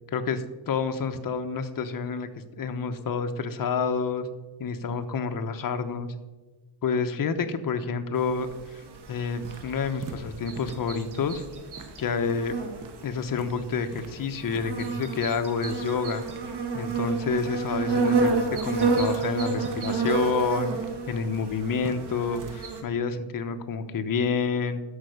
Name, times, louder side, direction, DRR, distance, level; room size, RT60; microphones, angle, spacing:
voice 1, 0.1-2.3 2.6-4.3 4.6-6.1 6.8-8.8 9.1-11.4 12.0-12.5 13.0-16.2 16.7-20.7 21.1-24.8, left 5 dB, 45° left, 8 dB, 1.0 m, -28 dB
sound 1, 8.2-22.8, right 4 dB, 55° right, 1.9 m, -30 dB
sound 2, 9.4-22.7, right 4 dB, 40° right, 1.3 m, -47 dB
11.5 x 6.5 x 6.4 m, 1.2 s
cardioid pair, 135°, 46 cm